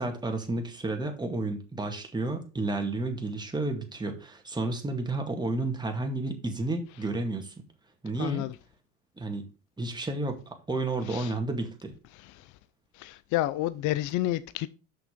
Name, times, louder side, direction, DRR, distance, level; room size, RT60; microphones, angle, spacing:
voice 1, 0.0-7.5 8.0-8.5 9.2-9.5 9.8-10.4 10.7-11.9, right 2 dB, 10° right, 2.1 m, -31 dB
voice 2, 8.2-8.6 11.0-11.3 12.1-12.6 12.9-14.7, left 15 dB, 55° left, 0.6 m, -30 dB
6.6 x 6.0 x 5.1 m
supercardioid pair, 95°, 35 cm